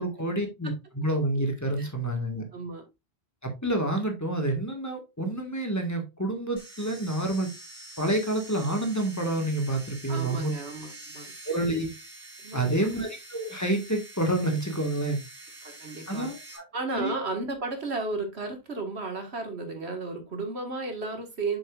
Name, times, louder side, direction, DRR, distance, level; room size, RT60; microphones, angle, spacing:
voice 1, 0.0-2.5 3.4-7.5 8.0-10.5 11.5-11.9 12.5-15.2 16.1-16.6 16.9-17.1, right 1 dB, 15° left, 1.8 m, -28 dB
voice 2, 2.5-2.8 10.1-11.3 12.4-12.9 15.6-16.3 16.7-21.6, right 3 dB, 85° right, 2.1 m, -33 dB
sound 1, 6.6-16.6, right 2 dB, 55° right, 3.3 m, -46 dB
7.1 x 6.7 x 2.5 m
omnidirectional pair, 1.1 m